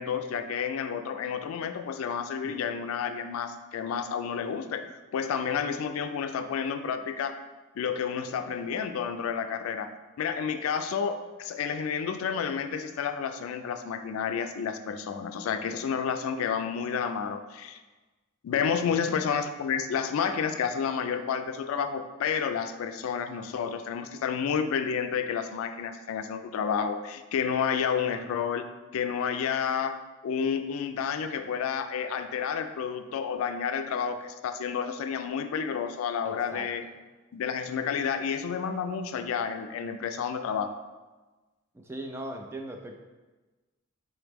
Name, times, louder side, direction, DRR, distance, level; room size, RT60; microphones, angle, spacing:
voice 1, 0.0-7.4 7.8-9.9 10.2-17.8 18.4-28.7 28.9-30.0 30.2-36.8 37.3-40.7, left 7 dB, 85° left, 8 dB, 0.3 m, -30 dB
voice 2, 36.2-36.7 41.8-43.0, right 1 dB, 10° right, 3 dB, 0.3 m, -39 dB
3.9 x 3.0 x 3.4 m, 1.2 s
head